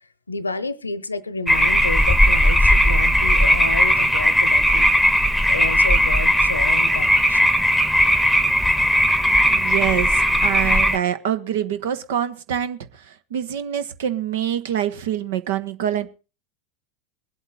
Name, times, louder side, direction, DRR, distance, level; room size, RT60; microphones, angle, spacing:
voice 1, 0.3-5.1 5.5-7.5, left 3 dB, 80° left, 0.9 m, -30 dB
sound 1, 1.5-11.0, equal, ahead, 1.2 m, -17 dB
voice 2, 9.4-16.1, right 10 dB, 60° right, 1.2 m, -25 dB
22.0 x 8.0 x 4.1 m
figure-of-eight pair, 85°, 0 cm